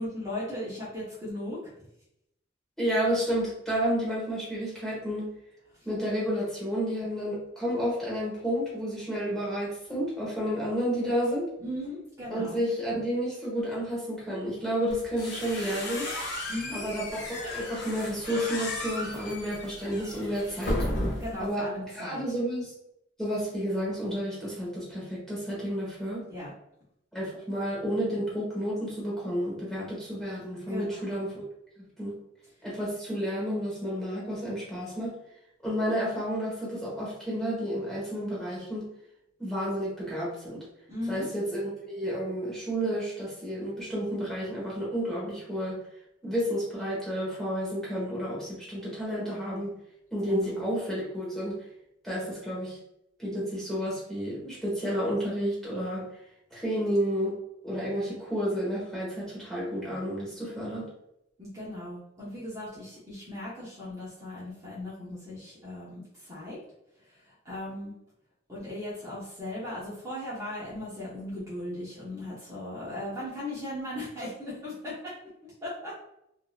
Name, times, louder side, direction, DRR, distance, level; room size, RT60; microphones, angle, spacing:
voice 1, 0.0-1.7 5.7-5.9 11.6-12.6 16.5-16.9 21.2-22.2 26.3-26.5 30.7-31.1 40.9-41.3 50.3-50.6 61.4-66.6 67.1-67.9 68.5-76.0, left 1 dB, 15° right, -9 dB, 1.0 m, -38 dB
voice 2, 2.8-5.3 5.8-11.5 12.3-16.1 16.7-20.8 21.4-21.7 21.9-22.7 23.2-26.3 27.1-31.4 31.8-32.2 32.6-35.2 35.6-38.9 39.4-40.6 41.1-45.8 46.2-49.8 50.1-51.6 52.0-52.8 53.2-56.0 56.5-57.4 57.6-60.9, equal, ahead, -6 dB, 1.3 m, -31 dB
sound 1, 14.9-21.5, left 1 dB, 65° left, 0.9 m, -34 dB
3.8 x 2.7 x 2.3 m, 0.80 s
head